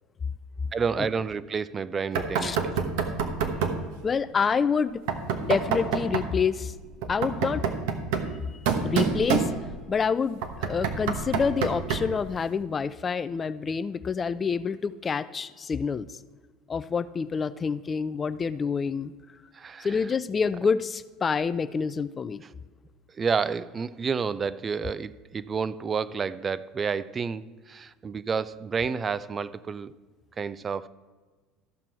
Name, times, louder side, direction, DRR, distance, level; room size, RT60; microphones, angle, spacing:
voice 1, 0.7-2.7 19.5-19.9 23.2-29.9 30.4-30.9, right 5 dB, 30° right, 17 dB, 0.4 m, -30 dB
Knock, 2.1-3.9 5.1-6.3 7.0-9.9 10.4-12.2, right 6 dB, 75° right, 1.0 m, -28 dB
voice 2, 4.0-5.0 5.4-6.7 7.1-7.6 8.8-9.5 9.9-16.1 16.7-19.1 19.8-22.4, left 5 dB, 30° left, 15 dB, 0.4 m, -27 dB
13.5 x 5.9 x 4.5 m, 1.4 s
hypercardioid pair, 80°, 0 cm